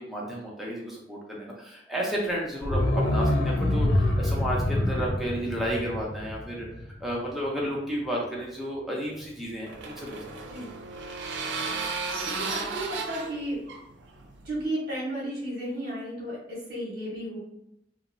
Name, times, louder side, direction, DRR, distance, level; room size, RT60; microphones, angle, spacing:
voice 1, 0.0-6.7 7.0-10.2, equal, ahead, -4 dB, 0.6 m, -32 dB
sound 1, 2.6-7.4 7.6-7.7, left 1 dB, 75° left, 0.5 m, -26 dB
sound 2, 9.1-14.6, right 4 dB, 85° right, 0.4 m, -34 dB
voice 2, 12.2-13.6 14.4-17.4, right 1 dB, 60° right, -6 dB, 0.8 m, -33 dB
2.7 x 2.0 x 2.5 m, 0.84 s
head